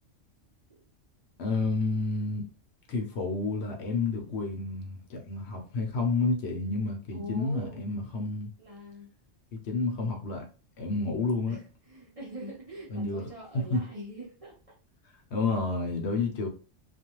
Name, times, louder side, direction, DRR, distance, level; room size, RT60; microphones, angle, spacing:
voice 1, 1.4-2.4 2.9-8.5 9.5-10.5 10.8-11.6 12.9-13.2 13.7-13.8 15.3-16.5, left 3 dB, 65° left, 0.9 m, -30 dB
voice 2, 7.1-7.9 8.6-9.1 11.4-14.6, equal, 35° right, 0.6 m, -43 dB
2.4 x 2.2 x 2.9 m
omnidirectional pair, 1.3 m